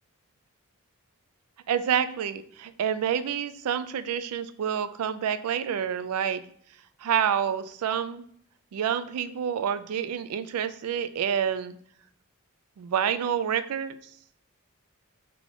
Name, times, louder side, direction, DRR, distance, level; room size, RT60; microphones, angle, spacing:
voice 1, 1.7-6.4 7.0-8.2 8.7-11.8 12.8-14.0, right 8 dB, 85° right, 13 dB, 0.3 m, -28 dB
4.0 x 2.9 x 3.5 m, 0.62 s
head